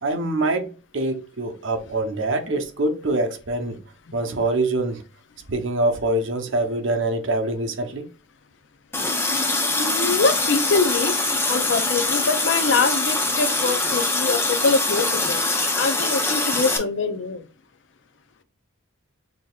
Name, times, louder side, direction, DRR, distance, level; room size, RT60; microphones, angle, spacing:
voice 1, 0.0-0.7 0.9-3.8 4.1-5.0 5.5-8.1, right 2 dB, 60° right, 0.8 m, -24 dB
Water tap faucet, 8.9-16.8, left 2 dB, 10° left, 0.6 m, -23 dB
voice 2, 9.8-15.4 15.8-17.5, left 4 dB, 60° left, 0.5 m, -24 dB
6.2 x 2.8 x 2.3 m
head